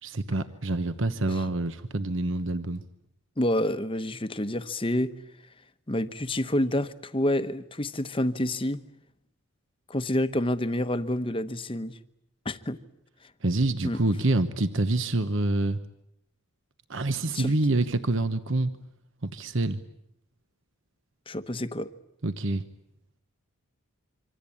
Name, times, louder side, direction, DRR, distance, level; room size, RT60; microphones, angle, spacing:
voice 1, 0.0-2.9 13.4-15.8 16.9-18.7 19.2-19.8 22.2-22.6, right 2 dB, 60° right, 11 dB, 1.1 m, -26 dB
voice 2, 3.4-5.1 5.9-8.8 9.9-12.0 12.4-12.8 13.8-14.0 17.3-17.5 21.3-21.9, left 1 dB, 25° left, 11 dB, 1.0 m, -28 dB
26.5 x 25.5 x 8.7 m, 0.78 s
head